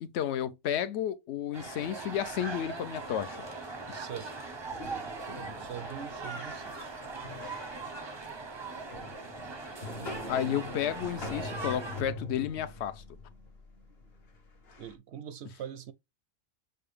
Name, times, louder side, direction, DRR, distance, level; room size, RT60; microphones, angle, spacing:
voice 1, 0.0-3.4 3.9-4.0 10.3-13.0, left 10 dB, 65° left, 0.7 m, -32 dB
sound 1, 1.5-12.0, right 3 dB, 30° right, 0.5 m, -40 dB
voice 2, 3.9-4.5 5.6-6.9 14.8-15.9, right 9 dB, 65° right, 0.7 m, -43 dB
sound 2, 4.7-14.9, left 2 dB, 50° left, 1.1 m, -44 dB
6.7 x 2.3 x 3.2 m
omnidirectional pair, 1.5 m